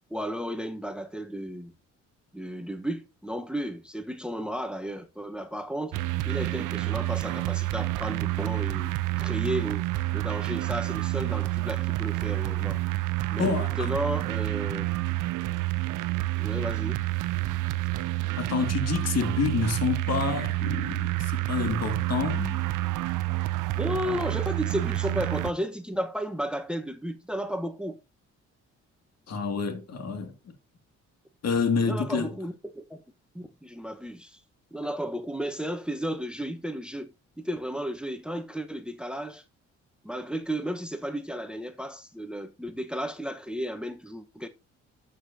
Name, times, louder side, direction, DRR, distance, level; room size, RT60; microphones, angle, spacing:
voice 1, 0.1-1.7 2.3-6.0 6.2-8.9 9.2-9.8 10.1-12.8 13.3-14.8 16.3-17.0 23.8-28.0 31.8-33.0 33.3-34.4 34.7-37.1 37.4-39.4 40.0-44.5, equal, 5° right, 1.1 m, -33 dB
sound 1, 5.9-25.5, right 18 dB, 85° right, 0.7 m, -29 dB
voice 2, 13.4-13.9 18.4-22.6 29.3-30.3 31.4-32.3, left 5 dB, 55° left, 2.3 m, -28 dB
12.0 x 6.4 x 2.8 m
cardioid pair, 90°, 30 cm